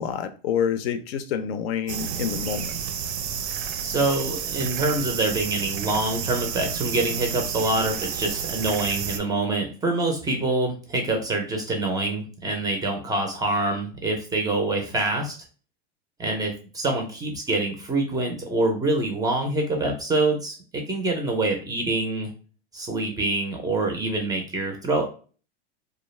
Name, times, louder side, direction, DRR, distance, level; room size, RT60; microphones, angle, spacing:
voice 1, 0.0-2.8, left 8 dB, 75° left, 0.5 m, -27 dB
sound 1, 1.9-9.2, right 8 dB, 90° right, 0.5 m, -30 dB
voice 2, 3.8-15.3 16.2-22.3 22.7-25.1, right 2 dB, 10° right, 0.4 m, -25 dB
2.3 x 2.0 x 3.0 m
supercardioid pair, 130°, 32 cm